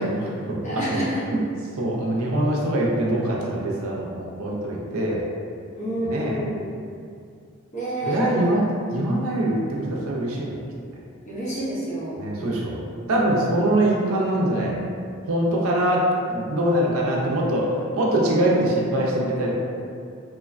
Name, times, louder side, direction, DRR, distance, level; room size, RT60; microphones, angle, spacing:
voice 1, 0.0-1.0 1.3-1.4 1.8-5.2 6.0-6.4 8.0-8.6 8.9-10.6 12.1-12.8 13.1-14.8 15.3-16.1 16.3-19.6, right 1 dB, 80° right, -3 dB, 0.5 m, -23 dB
voice 2, 0.6-1.4 5.8-6.6 7.7-8.5 11.2-12.7 18.3-18.6, right 1 dB, 35° left, -9 dB, 0.7 m, -29 dB
3.1 x 2.1 x 2.4 m, 2.4 s
head